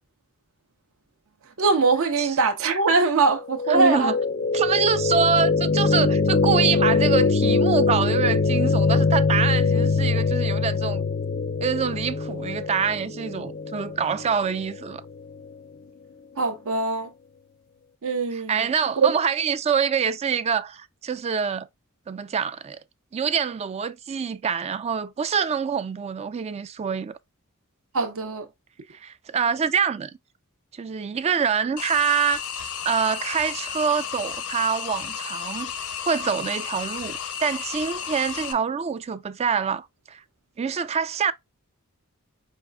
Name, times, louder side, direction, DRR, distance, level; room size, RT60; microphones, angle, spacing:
voice 1, 1.6-4.1 16.4-17.1 18.0-18.7 19.0-19.1 27.9-28.5, right 4 dB, 65° right, 0.7 m, -22 dB
sound 1, 3.5-15.5, left 4 dB, 40° left, 0.4 m, -23 dB
voice 2, 3.7-4.2 4.5-11.1 11.6-15.0 18.3-21.7 22.1-22.8 23.1-27.2 28.9-30.1 30.7-32.4 32.8-35.7 36.0-40.2 40.6-41.3, right 6 dB, 30° right, 0.3 m, -25 dB
sound 2, 31.8-38.5, left 7 dB, 75° left, 0.7 m, -33 dB
4.7 x 3.7 x 2.2 m
head